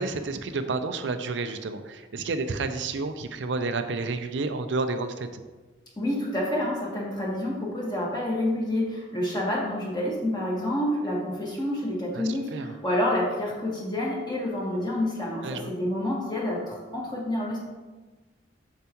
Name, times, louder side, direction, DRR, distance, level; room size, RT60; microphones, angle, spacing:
voice 1, 0.0-5.4 12.1-12.7 15.4-15.7, right 3 dB, 75° right, 9 dB, 0.5 m, -30 dB
voice 2, 6.0-17.6, left 1 dB, 20° left, -4 dB, 1.5 m, -28 dB
7.0 x 6.6 x 3.0 m, 1.2 s
head